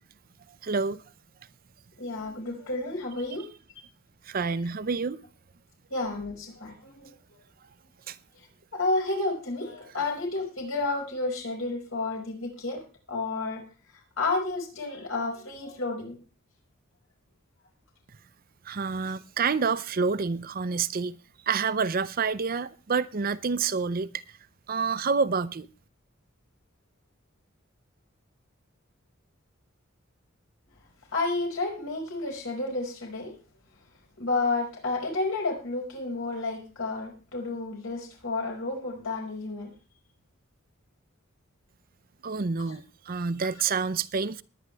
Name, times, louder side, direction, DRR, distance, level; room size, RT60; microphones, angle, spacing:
voice 1, 0.6-1.0 4.3-5.2 8.1-8.2 18.7-21.2 21.5-24.1 24.7-25.7 42.2-44.4, right 5 dB, 45° right, 0.6 m, -28 dB
voice 2, 2.0-3.5 5.9-7.1 8.7-12.8 13.1-13.6 14.2-16.2 31.1-33.3 34.2-39.7, left 3 dB, 80° left, 5.4 m, -31 dB
20.5 x 9.6 x 3.4 m
head